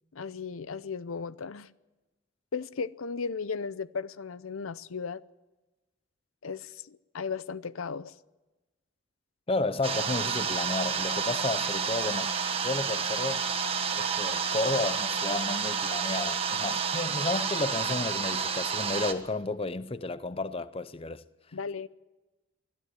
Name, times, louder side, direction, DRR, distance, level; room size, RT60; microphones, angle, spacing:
voice 1, 0.1-1.7 2.5-5.2 6.4-8.1 21.5-21.9, left 5 dB, 85° left, 0.6 m, -36 dB
voice 2, 9.5-12.3 12.6-13.5 14.0-21.2, left 2 dB, 25° left, 0.6 m, -32 dB
sound 1, 9.8-19.1, right 6 dB, 30° right, 1.4 m, -30 dB
22.0 x 12.5 x 9.8 m
head